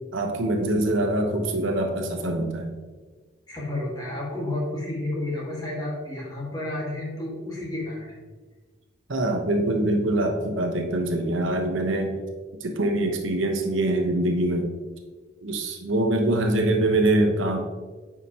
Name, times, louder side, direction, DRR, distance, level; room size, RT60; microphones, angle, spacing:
voice 1, 0.1-2.7 9.1-12.2 12.6-14.7 15.4-17.6, right 1 dB, 80° right, 3 dB, 0.9 m, -24 dB
voice 2, 3.5-8.2, left 1 dB, 20° left, -4 dB, 1.7 m, -31 dB
9.4 x 5.0 x 2.9 m, 1.4 s
head